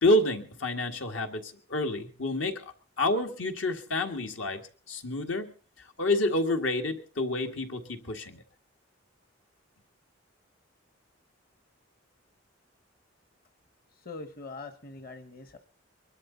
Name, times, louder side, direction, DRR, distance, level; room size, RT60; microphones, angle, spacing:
voice 1, 0.0-4.6 4.9-5.5 6.0-8.4, left 2 dB, 80° left, 4 dB, 2.0 m, -28 dB
voice 2, 13.9-15.6, left 3 dB, 50° left, 8 dB, 1.3 m, -43 dB
23.0 x 12.5 x 4.0 m, 0.37 s
head